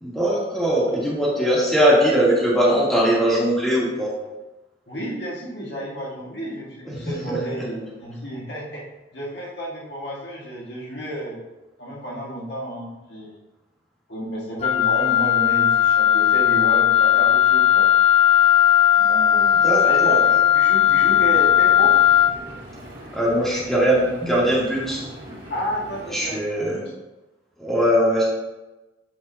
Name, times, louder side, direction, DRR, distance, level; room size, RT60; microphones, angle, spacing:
voice 1, 0.0-4.1 6.9-7.6 19.6-20.2 23.1-25.0 26.1-26.8 27.6-28.2, equal, ahead, -6 dB, 1.8 m, -21 dB
voice 2, 4.9-8.8 9.1-11.4 11.8-13.4 14.1-17.9 19.0-22.0 25.5-26.8, equal, 65° left, -5 dB, 1.7 m, -31 dB
Wind instrument woodwind instrument, 14.6-22.4, left 10 dB, 35° left, 0.3 m, -17 dB
Engine, 20.8-26.3, equal, 60° right, 2.2 m, -41 dB
8.3 x 4.9 x 2.7 m, 1.1 s
head